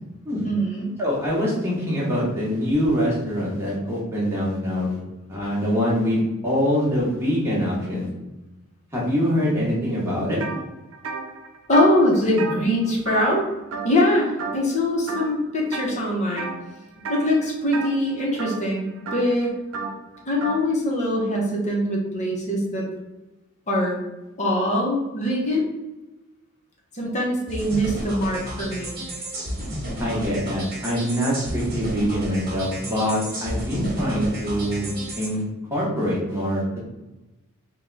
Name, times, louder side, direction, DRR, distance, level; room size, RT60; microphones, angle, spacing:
voice 1, 0.4-0.9 11.7-13.5 13.8-16.5 17.1-18.9 19.1-19.5 20.3-22.8 23.7-24.0 24.4-25.7 26.9-29.0, left 1 dB, 35° left, -2 dB, 0.8 m, -22 dB
voice 2, 1.0-5.0 5.3-8.1 8.9-10.4 30.0-35.4 35.7-36.8, equal, 10° right, -6 dB, 1.1 m, -24 dB
sound 1, 10.4-10.6 10.9-13.4 13.7-14.1 14.4-14.8 15.1-15.9 16.4-16.7 17.0-20.6, right 4 dB, 70° right, 0.5 m, -33 dB
sound 2, 27.5-35.3, right 1 dB, 45° right, 1.2 m, -32 dB
3.5 x 2.2 x 3.8 m, 1.0 s
head